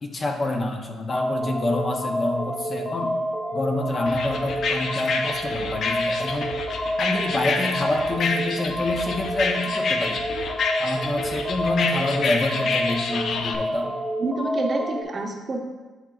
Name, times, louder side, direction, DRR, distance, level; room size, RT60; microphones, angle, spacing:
voice 1, 0.0-3.1 3.5-6.5 7.0-10.2 10.8-13.9, left 2 dB, 35° left, 3 dB, 0.8 m, -27 dB
sound 1, 1.1-15.0, equal, 10° left, 1.4 m, -29 dB
sound 2, 4.1-13.6, left 4 dB, 60° left, 0.5 m, -28 dB
voice 2, 14.2-15.6, right 2 dB, 40° right, 2 dB, 0.9 m, -28 dB
10.0 x 3.8 x 2.4 m, 1.3 s
cardioid pair, 80°, 0 cm